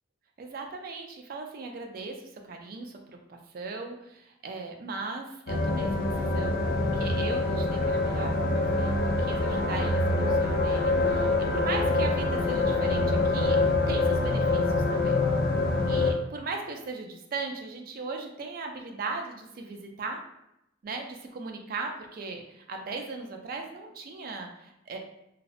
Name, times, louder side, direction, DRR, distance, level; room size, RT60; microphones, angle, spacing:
voice 1, 0.4-15.2 15.9-20.2 20.8-25.0, right 3 dB, 50° right, 3 dB, 0.3 m, -38 dB
sound 1, 5.5-16.1, left 2 dB, 50° left, 0.3 m, -25 dB
2.6 x 2.0 x 2.4 m, 0.83 s
head